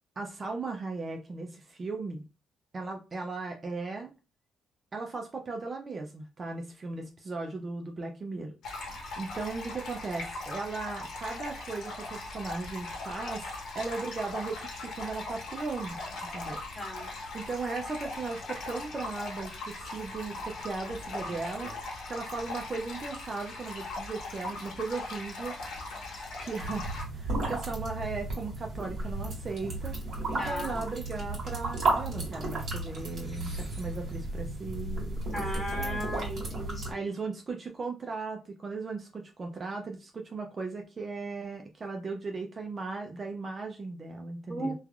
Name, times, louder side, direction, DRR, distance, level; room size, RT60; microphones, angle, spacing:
voice 1, 0.2-2.2 2.7-4.1 4.9-8.5 9.2-16.6 17.3-25.6 26.4-30.0 30.3-35.4 35.8-36.0 36.9-44.7, right 3 dB, 35° right, 3 dB, 0.4 m, -37 dB
sound 1, 8.6-27.0, left 2 dB, 75° left, 0.9 m, -39 dB
voice 2, 16.7-17.1 30.4-30.8 35.3-37.1 44.5-44.7, equal, 10° right, -9 dB, 1.2 m, -36 dB
sound 2, 26.6-36.9, right 2 dB, 55° right, 1.6 m, -34 dB
3.1 x 2.3 x 2.3 m, 0.30 s
cardioid pair, 90°, 0 cm